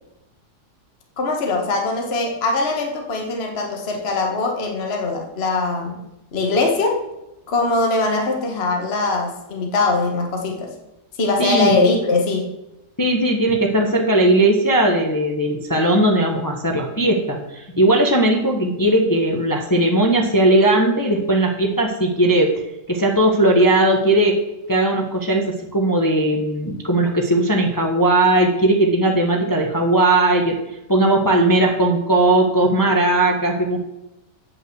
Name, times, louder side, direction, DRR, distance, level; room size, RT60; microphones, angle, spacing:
voice 1, 1.2-5.9 6.3-7.0 7.5-10.7 11.2-12.5, left 3 dB, 40° left, 2 dB, 1.5 m, -21 dB
voice 2, 11.4-11.8 13.0-22.5 22.9-24.4 24.7-30.6 30.9-33.8, right 1 dB, 15° left, 1 dB, 0.8 m, -18 dB
8.6 x 5.7 x 7.8 m, 0.93 s
omnidirectional pair, 1.7 m